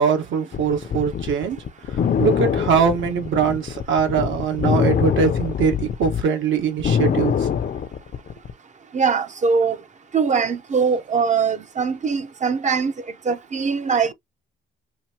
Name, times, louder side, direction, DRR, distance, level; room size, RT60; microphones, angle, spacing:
voice 1, 0.0-1.6 2.2-7.3, right 6 dB, 70° right, 1.4 m, -21 dB
sound 1, 0.5-6.2 6.6-8.5, left 7 dB, 50° left, 0.7 m, -23 dB
voice 2, 8.9-9.8 10.1-12.9 13.3-14.1, right 5 dB, 35° right, 0.7 m, -21 dB
5.6 x 2.7 x 2.8 m
cardioid pair, 90°, 20 cm